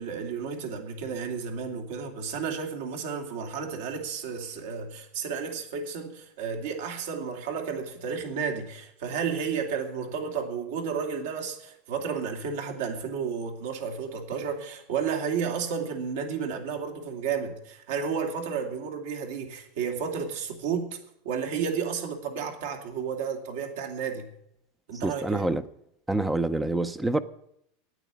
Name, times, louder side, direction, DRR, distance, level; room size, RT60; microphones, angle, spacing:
voice 1, 0.0-21.0 21.2-24.3 24.9-25.5, right 6 dB, 70° right, 2.7 m, -32 dB
voice 2, 25.0-25.6 26.1-27.2, right 2 dB, 5° right, 0.5 m, -26 dB
9.4 x 9.1 x 9.9 m
supercardioid pair, 170°, 0 cm